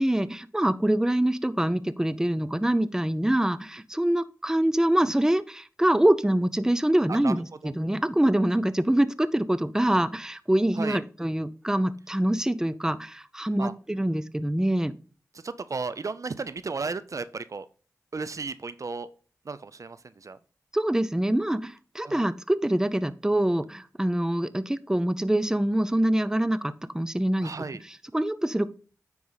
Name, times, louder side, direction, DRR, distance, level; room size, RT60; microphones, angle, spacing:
voice 1, 0.0-7.5 7.7-14.9 20.7-27.5 28.1-28.7, right 1 dB, 10° right, 14 dB, 0.6 m, -25 dB
voice 2, 15.3-17.7 18.1-19.1 19.5-20.4 22.0-22.2 27.4-27.8, right 4 dB, 60° right, 15 dB, 0.5 m, -34 dB
9.3 x 4.6 x 4.0 m, 0.38 s
cardioid pair, 45°, 6 cm